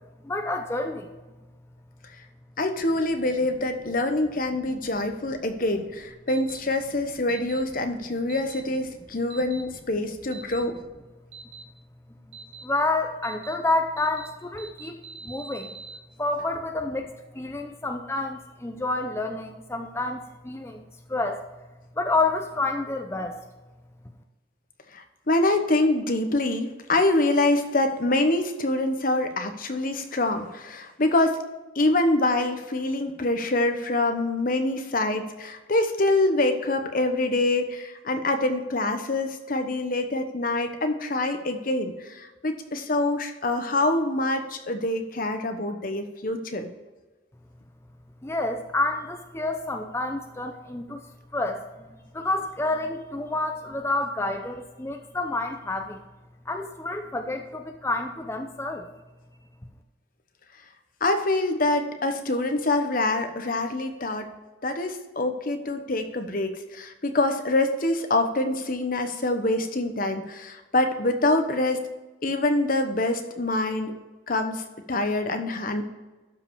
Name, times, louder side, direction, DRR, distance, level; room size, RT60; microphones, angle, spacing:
voice 1, 0.2-1.1 12.3-15.7 16.2-20.8 21.1-21.4 22.0-23.4 48.2-51.0 51.3-51.9 52.1-56.0 56.5-58.9, left 2 dB, 15° left, 4 dB, 0.6 m, -29 dB
voice 2, 2.6-10.8 24.9-31.4 31.7-46.7 61.0-64.3 64.6-71.8 72.2-73.9 74.3-74.6 74.9-75.8, left 2 dB, 45° left, 6 dB, 1.1 m, -25 dB
sound 1, 6.3-6.6 7.3-7.6 8.3-8.6 9.3-9.6 10.3-10.6 11.3-11.6 12.3-12.6 13.2-13.5 14.0-14.3 14.6-16.0, right 5 dB, 70° right, 1.0 m, -43 dB
12.5 x 5.4 x 4.7 m, 1.2 s
head